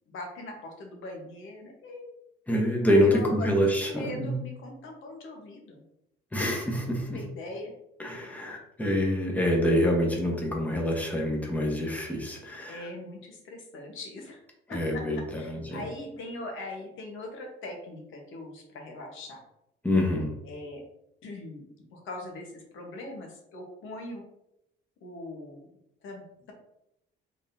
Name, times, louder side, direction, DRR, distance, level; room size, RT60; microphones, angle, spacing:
voice 1, 0.0-2.1 3.0-3.5 3.9-5.8 7.1-7.7 8.2-8.5 12.7-14.4 14.7-19.4 20.4-20.8 21.2-24.2 25.0-25.7 26.0-26.5, left 2 dB, 85° left, 1 dB, 1.2 m, -41 dB
voice 2, 2.5-4.4 6.3-7.2 8.0-12.9 14.7-15.8 19.8-20.3, equal, 10° left, -1 dB, 1.1 m, -26 dB
3.9 x 3.6 x 2.7 m, 0.82 s
cardioid pair, 90°, 20 cm